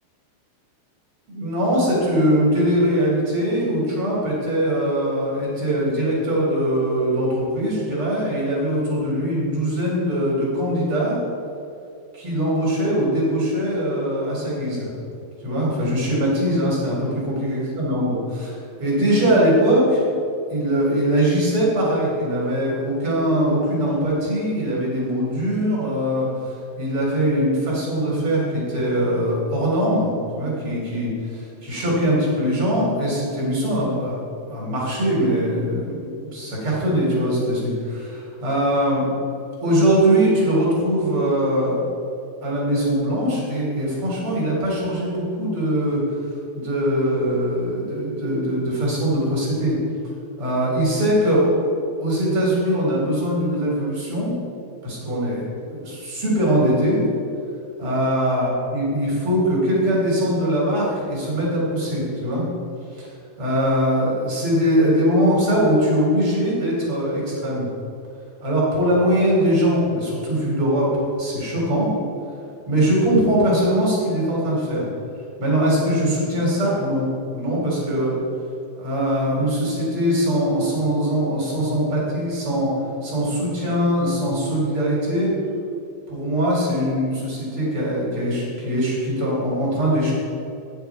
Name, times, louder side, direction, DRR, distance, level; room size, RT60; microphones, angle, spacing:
voice 1, 1.3-11.2 12.1-14.9 15.4-20.0 20.5-34.2 34.4-39.1 39.6-41.8 42.4-46.0 46.5-49.8 50.4-51.5 52.0-54.3 54.8-57.0 57.8-62.4 62.9-63.1 63.4-67.7 68.4-71.9 72.7-74.9 75.4-77.1 77.3-78.2 78.7-82.7 83.0-85.3 86.1-90.1, equal, 35° right, -5 dB, 2.9 m, -21 dB
10.5 x 8.0 x 4.6 m, 2.6 s
omnidirectional pair, 5.8 m